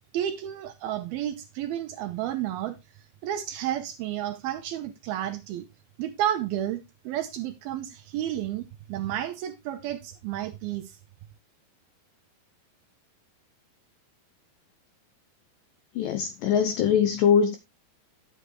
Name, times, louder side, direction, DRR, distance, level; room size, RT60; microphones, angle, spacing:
voice 1, 0.1-2.8 3.2-5.7 6.0-11.0, right 12 dB, 80° right, 2.5 m, -31 dB
voice 2, 16.0-17.6, left 7 dB, 75° left, 2.1 m, -22 dB
11.0 x 8.2 x 3.1 m
omnidirectional pair, 4.7 m